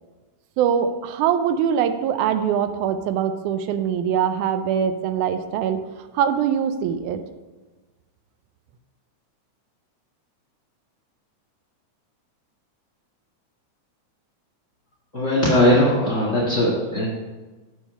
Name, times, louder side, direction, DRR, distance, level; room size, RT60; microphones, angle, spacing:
voice 1, 0.6-5.8 6.1-7.2, right 8 dB, 85° right, 9 dB, 2.0 m, -22 dB
voice 2, 15.1-17.1, left 1 dB, 35° left, -5 dB, 1.4 m, -19 dB
7.2 x 5.7 x 5.4 m, 1.2 s
omnidirectional pair, 3.5 m